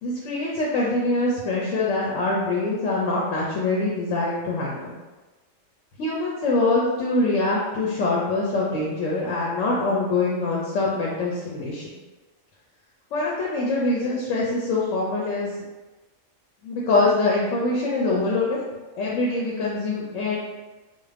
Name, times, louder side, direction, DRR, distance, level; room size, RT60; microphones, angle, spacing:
voice 1, 0.0-4.9 6.0-11.9 13.1-15.5 16.6-18.6 19.0-20.4, left 2 dB, 75° left, -4 dB, 0.9 m, -24 dB
2.5 x 2.3 x 3.2 m, 1.2 s
omnidirectional pair, 1.4 m